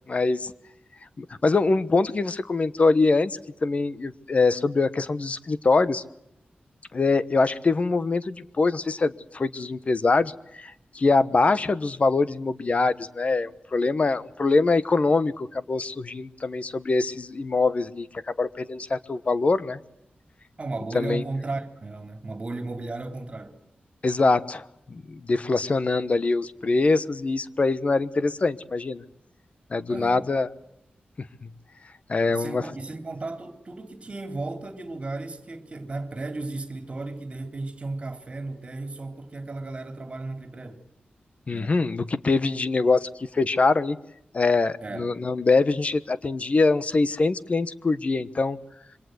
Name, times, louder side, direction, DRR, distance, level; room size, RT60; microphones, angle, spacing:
voice 1, 0.1-0.5 1.2-6.0 6.9-19.8 20.9-21.2 24.0-24.6 24.9-29.0 29.7-30.5 31.4-31.5 32.1-32.6 41.5-44.0 44.3-48.6, left 3 dB, 40° left, 1.2 m, -23 dB
voice 2, 20.6-23.6 29.9-30.2 32.3-40.8 41.5-41.7 44.8-45.1, right 2 dB, 35° right, 3.3 m, -35 dB
27.0 x 24.0 x 8.0 m
wide cardioid pair, 150°, 3 cm